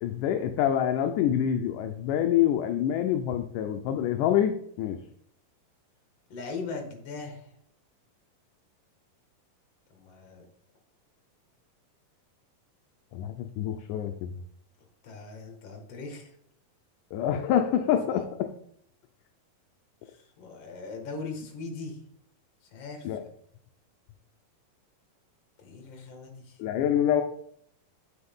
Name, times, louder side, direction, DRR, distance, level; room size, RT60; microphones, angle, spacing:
voice 1, 0.0-5.0 13.1-14.3 17.1-18.5 23.0-23.2 26.6-27.2, left 10 dB, 75° left, 6 dB, 2.0 m, -26 dB
voice 2, 6.3-7.4 9.9-10.5 15.0-16.3 18.1-18.2 20.1-22.0 22.7-23.3 25.6-26.6, left 4 dB, 50° left, 3 dB, 2.7 m, -40 dB
8.9 x 8.4 x 3.7 m, 0.68 s
omnidirectional pair, 4.0 m